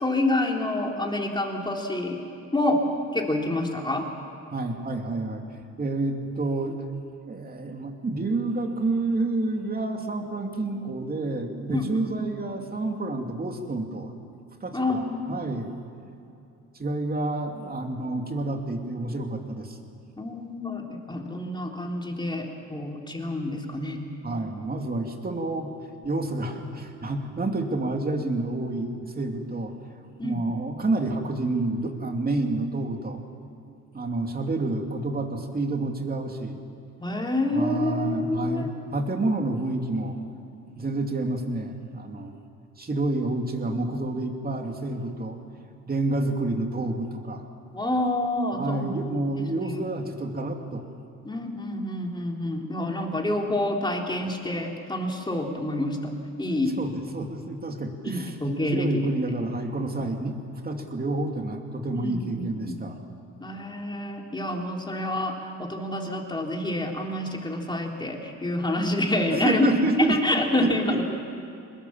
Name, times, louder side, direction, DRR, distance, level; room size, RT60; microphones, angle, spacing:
voice 1, 0.0-2.2 2.5-2.8 3.1-4.0 11.7-12.0 14.7-15.5 20.2-24.0 30.2-30.4 37.0-38.7 47.7-48.9 49.6-49.8 51.2-56.1 56.4-56.7 58.0-58.9 61.9-62.8 63.4-69.7 70.0-71.0, left 1 dB, 15° left, 1 dB, 3.4 m, -28 dB
voice 2, 4.5-5.4 5.8-6.8 7.3-14.2 14.6-15.7 16.7-19.8 24.2-25.7 26.0-29.7 30.2-33.2 33.9-36.6 37.5-40.2 40.7-42.4 42.8-45.4 45.9-47.4 48.5-50.9 56.8-58.4 58.6-60.4 60.6-63.0 69.3-71.0, right 2 dB, 30° right, 3 dB, 2.7 m, -29 dB
23.0 x 20.5 x 7.3 m, 2.7 s
cardioid pair, 90°, 30 cm